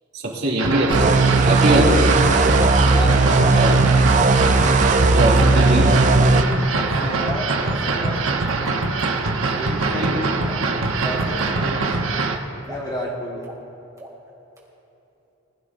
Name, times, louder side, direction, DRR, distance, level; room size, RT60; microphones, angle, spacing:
voice 1, 0.1-1.0 1.4-2.0 3.6-3.7 5.0-6.0 9.8-10.2, right 1 dB, 50° right, -4 dB, 2.7 m, -21 dB
sound 1, 0.6-12.4, right 3 dB, 80° right, 1.0 m, -23 dB
sound 2, 0.9-6.4, right 3 dB, 35° right, 0.5 m, -16 dB
voice 2, 2.9-3.7 6.7-8.2 9.4-10.1 10.8-12.1 12.7-13.5, equal, 20° left, -3 dB, 1.6 m, -32 dB
sound 3, 6.6-6.7 7.2-7.3 8.1-9.2 10.5-11.5 12.6-13.0 13.4-13.7 14.0-14.3 14.6-14.7, right 1 dB, 15° right, 2.5 m, -41 dB
20.5 x 13.0 x 2.6 m, 2.9 s
head